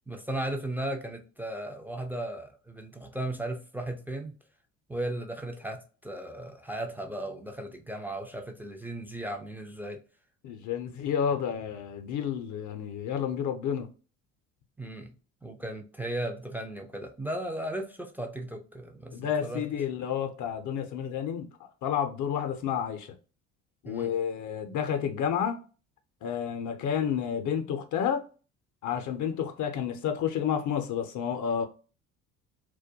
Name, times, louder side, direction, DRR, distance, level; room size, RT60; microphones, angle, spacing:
voice 1, 0.1-4.3 4.9-10.0 14.8-15.1 15.4-19.7 22.6-22.7 23.9-24.1, right 1 dB, 5° right, 0.3 m, -36 dB
voice 2, 10.4-13.9 19.1-23.1 23.8-25.6 26.2-28.2 28.8-31.7, left 8 dB, 50° left, 0.5 m, -30 dB
2.2 x 2.1 x 2.6 m
hypercardioid pair, 60°, 37 cm